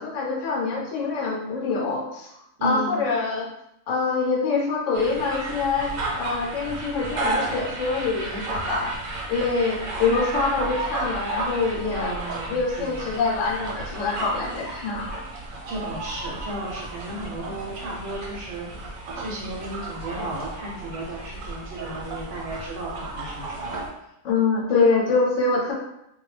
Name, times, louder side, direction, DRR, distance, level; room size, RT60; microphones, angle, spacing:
voice 1, 0.0-3.5 3.9-8.9 9.3-12.1 12.5-15.2 24.2-25.7, left 4 dB, 75° left, -1 dB, 0.9 m, -25 dB
voice 2, 2.6-3.0 11.9-12.9 15.7-18.9 19.2-23.8, right 1 dB, 65° right, -3 dB, 1.0 m, -34 dB
sound 1, 4.9-23.9, right 2 dB, 90° right, 1.1 m, -33 dB
2.3 x 2.2 x 3.1 m, 0.82 s
omnidirectional pair, 1.4 m